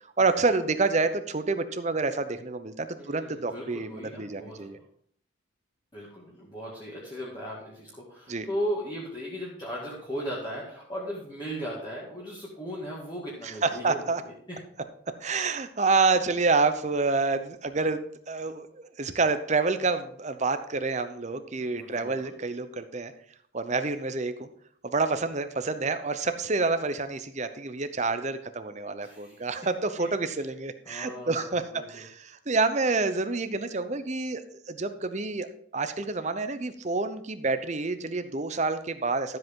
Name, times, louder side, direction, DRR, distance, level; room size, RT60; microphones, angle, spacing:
voice 1, 0.2-4.8 8.3-8.5 13.4-14.2 15.2-23.1 23.5-24.5 24.8-35.5 35.7-39.4, right 3 dB, 35° right, 10 dB, 0.7 m, -28 dB
voice 2, 2.9-4.8 5.9-14.0 14.5-14.6 21.6-22.3 29.0-29.5 30.0-30.4 30.9-32.0, equal, 20° left, -6 dB, 2.0 m, -37 dB
12.5 x 7.9 x 3.7 m, 0.63 s
head